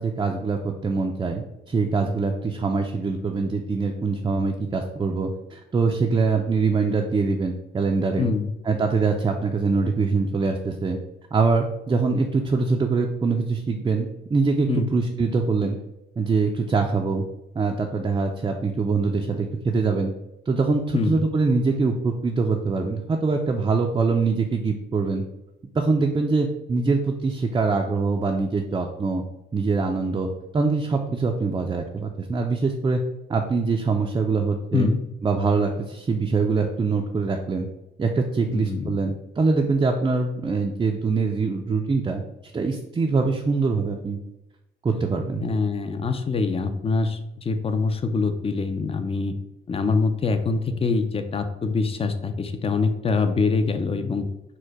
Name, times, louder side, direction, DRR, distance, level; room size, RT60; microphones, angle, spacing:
voice 1, 0.0-8.3 8.6-11.0 11.3-15.8 16.2-17.2 17.5-20.1 20.5-25.2 25.7-29.2 29.5-33.0 33.3-34.9 35.2-37.7 38.0-42.2 42.5-44.2 44.8-45.4, right 4 dB, 20° right, 2 dB, 0.4 m, -23 dB
voice 2, 8.2-8.5 14.7-14.9 20.9-21.2 34.7-35.0 38.5-38.9 45.4-49.3 49.7-54.3, left 4 dB, 30° left, 8 dB, 0.5 m, -24 dB
4.4 x 2.2 x 4.7 m, 0.90 s
cardioid pair, 90°, 20 cm